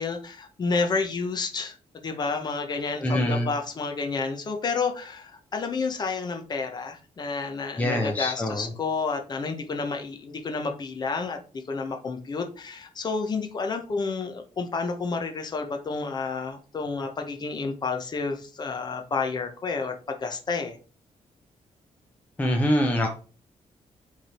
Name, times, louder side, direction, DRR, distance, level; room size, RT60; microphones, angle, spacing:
voice 1, 0.0-1.8 2.0-20.8, left 4 dB, 35° left, 5 dB, 1.1 m, -30 dB
voice 2, 3.0-3.5 7.8-8.7 22.4-23.1, left 1 dB, 10° left, 1 dB, 0.9 m, -24 dB
7.9 x 3.7 x 4.4 m, 0.37 s
wide cardioid pair, 175°, 13 cm